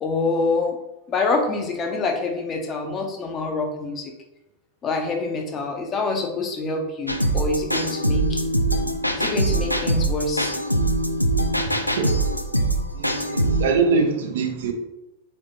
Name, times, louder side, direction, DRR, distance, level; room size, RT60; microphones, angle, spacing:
voice 1, 0.0-0.8 1.1-4.1 4.8-8.5 9.2-10.5, left 3 dB, 25° left, 0.7 m, -26 dB
sound 1, 7.1-13.7, right 1 dB, 90° left, 0.3 m, -23 dB
voice 2, 11.6-12.2 12.9-14.7, right 4 dB, 60° right, 0.6 m, -23 dB
4.0 x 3.1 x 3.1 m
figure-of-eight pair, 90°, 0 cm